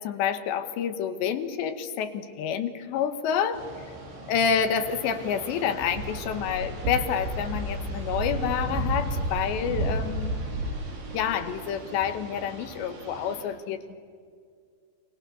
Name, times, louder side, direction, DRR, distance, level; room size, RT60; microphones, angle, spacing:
voice 1, 0.0-3.7 4.3-10.4 11.1-14.0, left 8 dB, 80° left, 9 dB, 3.4 m, -28 dB
sound 1, 3.5-13.4, right 1 dB, 85° right, 7.9 m, -33 dB
29.5 x 24.0 x 6.9 m, 2.1 s
omnidirectional pair, 5.1 m